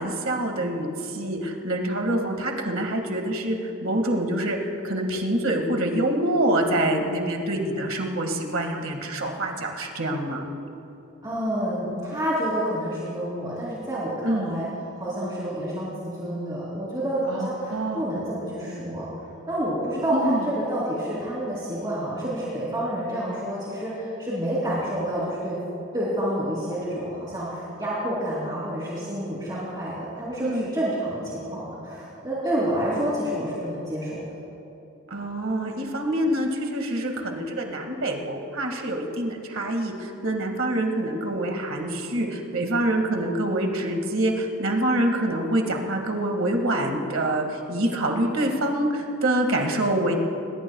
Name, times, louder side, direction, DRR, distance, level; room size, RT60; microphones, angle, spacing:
voice 1, 0.0-10.5 14.2-14.6 17.3-18.3 20.1-20.5 30.4-30.7 35.1-50.1, right 1 dB, 70° right, 3 dB, 2.0 m, -26 dB
voice 2, 11.2-14.7 15.0-19.1 19.5-25.6 25.9-34.2, right 1 dB, 20° right, -9 dB, 3.2 m, -28 dB
22.0 x 21.5 x 2.3 m, 2.8 s
head